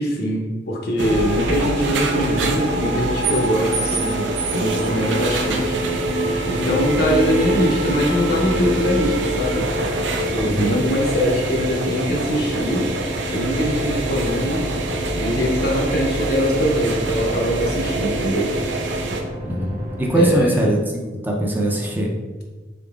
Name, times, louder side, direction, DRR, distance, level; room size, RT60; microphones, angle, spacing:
voice 1, 0.0-5.8 6.5-9.7 10.3-12.9 13.3-14.7 15.2-18.5 20.1-20.6, equal, 60° left, 0 dB, 0.7 m, -22 dB
sound 1, 1.0-19.2, right 2 dB, 85° right, 0.5 m, -24 dB
sound 2, 5.4-20.4, left 1 dB, 60° right, 1.2 m, -32 dB
voice 2, 10.4-10.8 19.4-22.1, right 1 dB, 10° right, -1 dB, 0.4 m, -21 dB
3.9 x 3.7 x 2.3 m, 1.3 s
head